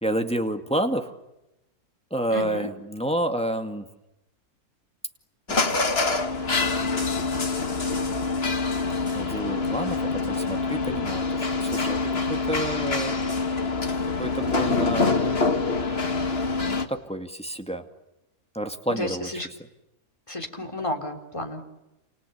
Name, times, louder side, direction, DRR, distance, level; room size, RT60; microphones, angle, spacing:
voice 1, 0.0-1.2 2.1-3.9 5.5-5.8 9.1-13.2 14.2-15.1 16.7-17.8 18.5-19.4, right 1 dB, 5° left, 6 dB, 2.1 m, -29 dB
voice 2, 2.3-2.7 18.9-19.5 20.3-21.6, left 1 dB, 20° left, 4 dB, 3.8 m, -32 dB
sound 1, 5.5-16.9, left 3 dB, 40° left, 2.2 m, -25 dB
30.0 x 28.5 x 7.0 m, 0.95 s
omnidirectional pair, 1.6 m